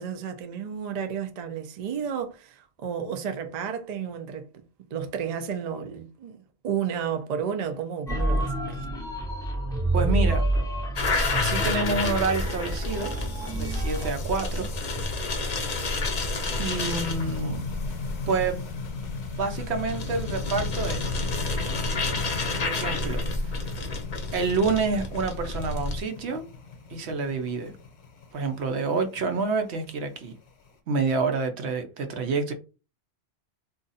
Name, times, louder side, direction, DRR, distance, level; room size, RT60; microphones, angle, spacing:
voice 1, 0.0-4.6 4.9-8.9, right 7 dB, 55° right, 0.4 m, -32 dB
sound 1, 8.1-14.1, right 1 dB, 5° left, 0.4 m, -28 dB
voice 2, 9.9-10.5 11.1-13.1 13.5-14.7 16.6-17.6 18.3-18.8 19.3-21.1 22.6-23.7 24.3-26.4 26.9-27.8 28.3-30.3 30.9-32.5, right 4 dB, 70° right, 0.9 m, -28 dB
sound 2, 11.0-26.0, left 3 dB, 45° left, 0.6 m, -30 dB
sound 3, 12.3-30.7, left 4 dB, 70° left, 0.9 m, -37 dB
2.5 x 2.4 x 3.9 m
omnidirectional pair, 1.2 m